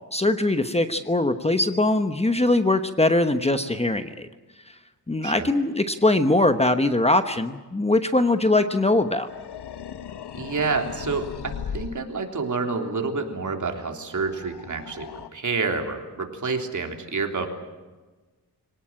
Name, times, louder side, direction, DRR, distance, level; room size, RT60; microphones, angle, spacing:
voice 1, 0.1-4.3 5.1-9.3, left 2 dB, 15° left, 9 dB, 1.1 m, -21 dB
sound 1, 8.7-12.1 14.1-15.3, left 8 dB, 90° left, 1.1 m, -37 dB
voice 2, 10.3-17.5, right 4 dB, 50° right, 4 dB, 3.4 m, -28 dB
25.0 x 18.5 x 8.9 m, 1.2 s
wide cardioid pair, 110°, 39 cm